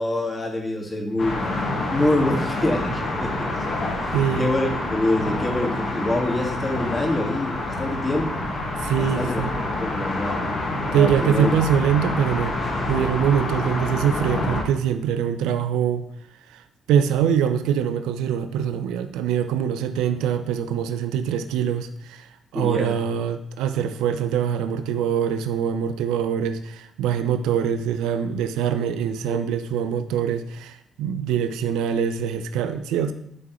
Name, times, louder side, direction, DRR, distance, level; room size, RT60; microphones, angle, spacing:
voice 1, 0.0-1.4 1.9-3.5 4.0-8.3 9.0-9.4 9.8-10.4 10.9-11.6 22.5-23.0 29.3-29.4, left 2 dB, 30° left, 1 dB, 1.9 m, -25 dB
sound 1, 1.2-14.6, left 2 dB, 55° left, 1.7 m, -27 dB
voice 2, 4.1-4.5 8.8-9.5 10.9-12.6 12.9-16.0 16.9-22.3 22.5-33.1, right 8 dB, 85° right, 9 dB, 0.4 m, -23 dB
10.5 x 3.7 x 3.1 m, 0.72 s
supercardioid pair, 60°, 0 cm